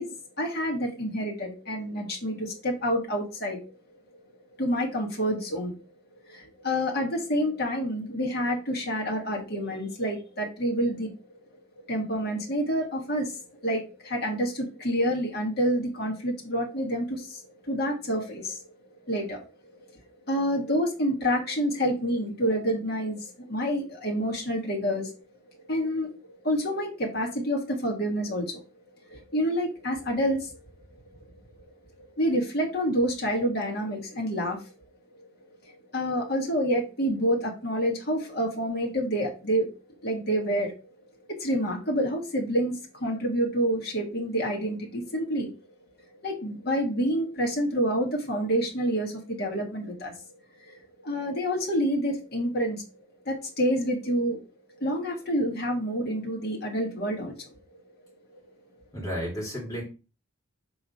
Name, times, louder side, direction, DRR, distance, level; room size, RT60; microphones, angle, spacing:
voice 1, 0.0-3.6 4.6-5.7 6.3-11.1 11.9-18.6 19.1-19.4 20.3-25.1 25.7-26.1 26.4-28.6 29.1-30.6 32.0-34.6 35.2-35.3 35.7-39.7 40.0-40.7 41.3-45.5 46.2-50.1 50.7-52.8 53.3-54.4 54.8-57.5, equal, 50° left, 1.7 m, -28 dB
voice 2, 58.9-59.8, equal, 15° left, 2.4 m, -32 dB
6.1 x 3.7 x 4.2 m
head